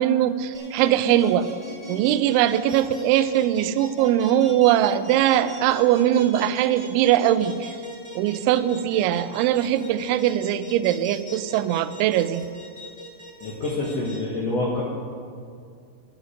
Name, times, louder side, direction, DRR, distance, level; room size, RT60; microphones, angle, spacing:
voice 1, 0.0-1.5 1.9-7.8 8.2-12.5, right 12 dB, 85° right, 13 dB, 2.9 m, -21 dB
sound 1, 0.5-14.2, left 1 dB, 15° right, 1.2 m, -39 dB
voice 2, 13.4-14.8, left 2 dB, 70° left, -5 dB, 1.5 m, -26 dB
13.0 x 11.5 x 5.1 m, 2.3 s
omnidirectional pair, 5.5 m